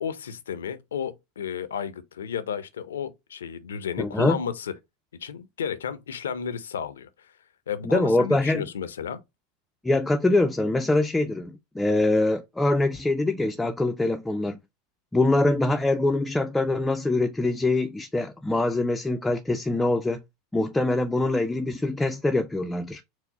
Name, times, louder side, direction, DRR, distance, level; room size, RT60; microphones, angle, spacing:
voice 1, 0.0-4.7 5.2-7.1 7.7-9.2, left 7 dB, 90° left, 0.5 m, -32 dB
voice 2, 4.0-4.4 7.8-8.6 9.8-14.6 15.1-20.2 20.5-23.0, left 2 dB, 10° left, 0.4 m, -24 dB
4.6 x 2.0 x 4.0 m
hypercardioid pair, 100°, 0 cm